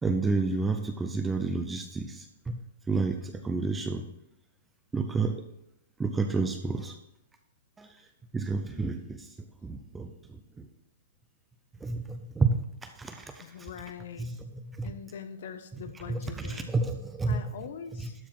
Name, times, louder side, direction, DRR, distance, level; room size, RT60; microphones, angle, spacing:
voice 1, 0.0-4.1 4.9-5.4 6.0-7.0 7.8-8.1 8.3-10.7 11.8-13.7 14.2-14.9 15.7-17.5 17.9-18.1, right 3 dB, 5° right, 7 dB, 0.4 m, -31 dB
voice 2, 13.4-14.3 14.8-16.7 17.3-18.1, left 7 dB, 50° left, 9 dB, 1.0 m, -42 dB
12.0 x 4.8 x 5.9 m, 0.81 s
hypercardioid pair, 175°, 0 cm